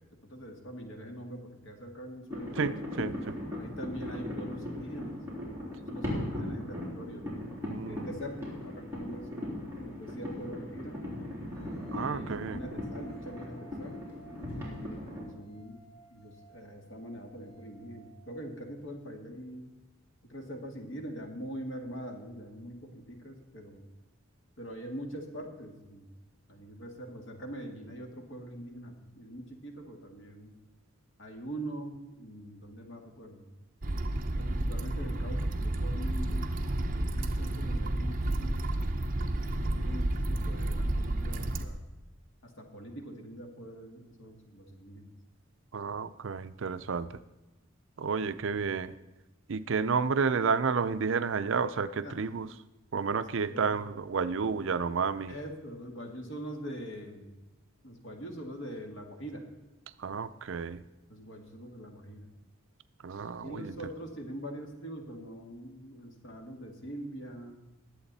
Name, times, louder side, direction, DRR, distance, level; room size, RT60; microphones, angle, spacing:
voice 1, 0.2-2.6 3.6-5.2 5.7-7.4 7.9-9.3 9.8-11.0 11.9-14.0 14.4-15.8 16.1-19.7 20.3-23.8 24.6-26.1 26.5-30.5 31.2-33.5 34.4-36.5 36.9-41.9 42.4-45.1 52.0-52.2 53.2-53.8 55.3-57.4 57.8-59.4 61.1-62.3 63.4-67.6, right 1 dB, 60° left, 3 dB, 2.1 m, -43 dB
sound 1, 2.3-15.2, left 1 dB, 10° right, 4.0 m, -38 dB
voice 2, 2.6-3.4 7.6-8.0 11.9-12.6 45.7-47.1 48.0-48.9 49.5-52.5 52.9-55.3 60.0-60.8 63.0-63.7, right 5 dB, 60° right, 13 dB, 0.5 m, -31 dB
sound 2, 11.5-18.6, right 2 dB, 35° left, 4.9 m, -58 dB
sound 3, 33.8-41.7, right 1 dB, 40° right, 0.9 m, -31 dB
20.5 x 7.9 x 4.1 m, 1.1 s
head